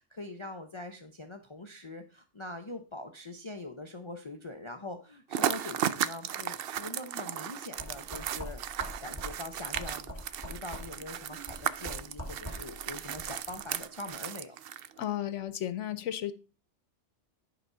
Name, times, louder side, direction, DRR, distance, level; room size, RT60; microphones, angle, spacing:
voice 1, 0.0-10.2 10.5-14.6, left 2 dB, 30° left, 0.8 m, -43 dB
sound 1, 5.3-15.0, right 10 dB, 60° right, 0.7 m, -35 dB
sound 2, 7.8-13.6, equal, 10° right, 4.1 m, -44 dB
voice 2, 15.0-16.3, left 11 dB, 75° left, 1.0 m, -33 dB
11.0 x 4.0 x 5.6 m
omnidirectional pair, 1.3 m